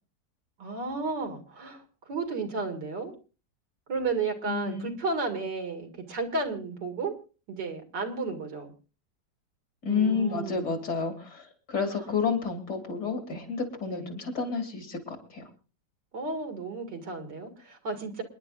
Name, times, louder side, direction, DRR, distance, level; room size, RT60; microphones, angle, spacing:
voice 1, 0.6-3.1 3.9-7.1 7.5-8.7 9.9-10.8 11.9-12.0 13.9-14.0 16.1-18.2, right 3 dB, 85° right, 5 dB, 2.7 m, -33 dB
voice 2, 4.5-4.9 9.8-15.5, left 5 dB, 70° left, 4 dB, 3.4 m, -30 dB
28.0 x 10.5 x 2.5 m, 0.35 s
omnidirectional pair, 1.9 m